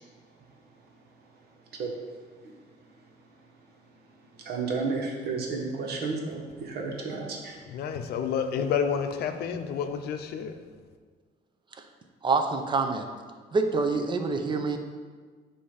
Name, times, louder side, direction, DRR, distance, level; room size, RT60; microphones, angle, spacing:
voice 1, 4.4-7.6, right 4 dB, 70° right, 0 dB, 1.4 m, -32 dB
voice 2, 7.7-10.5, left 7 dB, 70° left, 7 dB, 0.6 m, -29 dB
voice 3, 12.2-13.1 13.5-14.8, right 4 dB, 30° right, 5 dB, 0.7 m, -26 dB
8.2 x 2.8 x 5.7 m, 1.5 s
cardioid pair, 110°, 17 cm